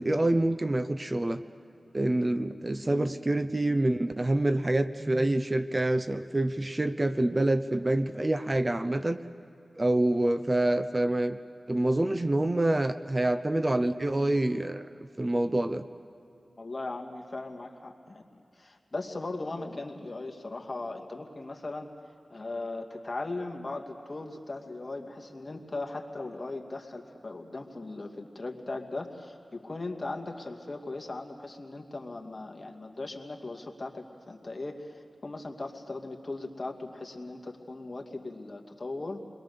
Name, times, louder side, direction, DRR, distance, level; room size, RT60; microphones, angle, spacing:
voice 1, 0.0-1.4 1.9-9.2 9.8-11.4 11.7-14.8 15.2-15.9, right 1 dB, 35° right, 10 dB, 0.8 m, -26 dB
voice 2, 2.8-3.1 16.6-21.9 22.3-39.2, left 2 dB, 40° left, 2 dB, 2.3 m, -38 dB
29.5 x 22.0 x 6.9 m, 2.7 s
cardioid pair, 55°, 0 cm